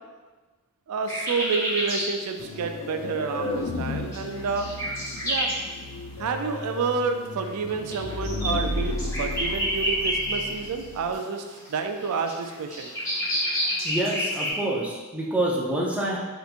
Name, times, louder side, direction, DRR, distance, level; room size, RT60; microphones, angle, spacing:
voice 1, 0.9-4.7 5.2-5.5 6.2-12.9, right 5 dB, 85° right, 6 dB, 0.3 m, -29 dB
sound 1, 1.1-2.1 2.5-2.6 3.9-5.6 6.5-6.7 7.4-10.8 11.1-14.5, equal, 15° left, 1.0 m, -29 dB
sound 2, 2.4-11.2, left 2 dB, 60° left, 0.3 m, -34 dB
voice 2, 13.8-16.2, right 1 dB, 5° right, -4 dB, 0.4 m, -27 dB
3.4 x 2.9 x 2.5 m, 1.3 s
head